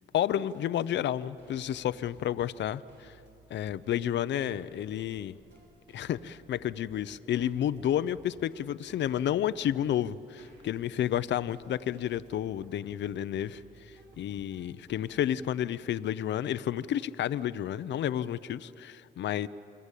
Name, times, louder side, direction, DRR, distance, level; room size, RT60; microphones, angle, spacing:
voice 1, 0.1-3.1 3.5-5.3 5.9-19.5, left 11 dB, 65° left, 15 dB, 0.7 m, -31 dB
sound 1, 1.2-15.2, right 2 dB, 65° right, 7.4 m, -58 dB
27.5 x 22.0 x 8.4 m, 2.7 s
cardioid pair, 90°, 20 cm